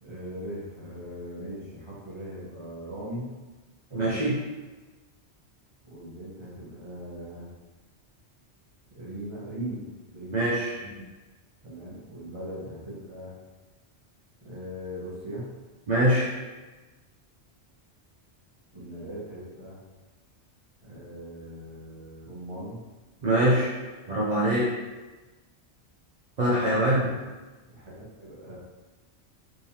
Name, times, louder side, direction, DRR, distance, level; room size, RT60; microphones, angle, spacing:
voice 1, 0.0-3.3 3.9-4.3 5.8-7.5 8.9-9.9 10.1-10.5 11.6-13.4 14.4-15.5 18.7-19.8 20.8-22.8 27.0-27.2 27.7-28.6, equal, 30° right, -7 dB, 0.9 m, -39 dB
voice 2, 3.9-4.4 10.3-10.9 15.9-16.3 23.2-23.7 24.1-24.7 26.4-27.1, right 1 dB, 50° right, -6 dB, 0.6 m, -23 dB
3.6 x 3.2 x 2.7 m, 1.2 s
omnidirectional pair, 1.1 m